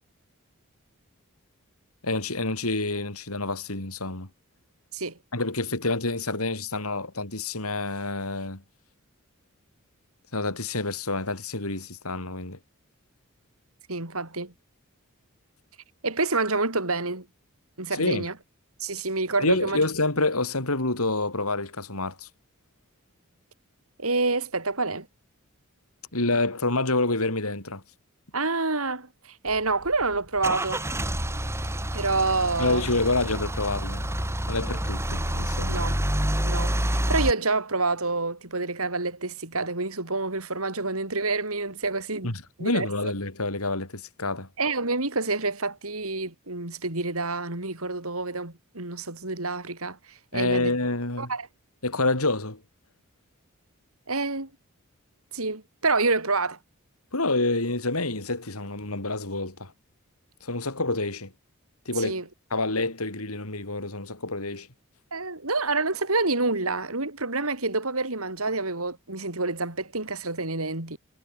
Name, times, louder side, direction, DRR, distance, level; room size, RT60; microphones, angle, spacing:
voice 1, 2.0-4.3 5.3-8.6 10.3-12.6 17.9-18.3 19.4-22.3 26.1-27.8 32.6-34.1 34.5-35.9 42.2-44.5 50.3-51.3 51.8-52.6 57.1-59.7 60.4-61.3 61.9-62.2 62.5-64.7, left 2 dB, 85° left, 5.4 m, -28 dB
voice 2, 13.9-14.5 16.0-17.3 17.8-18.3 18.8-19.9 24.0-25.1 28.3-30.8 31.9-32.8 35.7-36.0 36.4-42.3 42.6-42.9 44.6-50.0 50.3-50.8 51.2-51.5 54.1-54.5 55.3-56.6 62.0-62.2 65.1-71.0, right 3 dB, 75° right, 5.3 m, -28 dB
Car / Engine starting / Idling, 29.5-37.3, right 1 dB, 10° right, 5.1 m, -28 dB
head